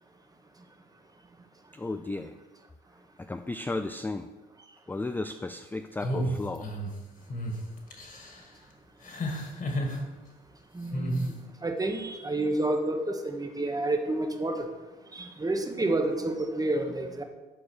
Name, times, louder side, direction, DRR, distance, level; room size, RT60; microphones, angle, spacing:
voice 1, 1.7-2.3 3.2-4.3 4.9-6.7, left 2 dB, 10° left, 8 dB, 0.4 m, -34 dB
sound 1, 6.0-6.9 7.3-7.5 7.9-8.4 9.0-10.0 10.9-11.3, equal, 45° left, 2.0 m, -31 dB
voice 2, 10.7-11.3 11.6-14.7 15.1-17.2, right 2 dB, 20° right, 5 dB, 1.2 m, -29 dB
9.0 x 4.7 x 6.6 m, 1.2 s
cardioid pair, 90°, 20 cm